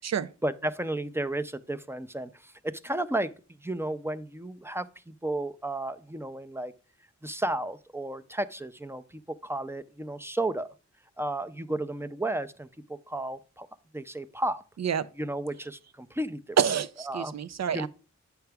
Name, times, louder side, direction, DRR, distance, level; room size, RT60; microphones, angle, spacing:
voice 1, 0.4-3.3 3.6-6.7 7.2-10.7 11.2-13.7 13.9-14.6 15.2-16.6 17.1-17.3 17.7-17.9, right 1 dB, 10° right, 0.5 m, -33 dB
voice 2, 14.8-15.1 16.6-17.9, right 8 dB, 60° right, 0.5 m, -27 dB
9.0 x 5.8 x 3.5 m
wide cardioid pair, 100°, 30 cm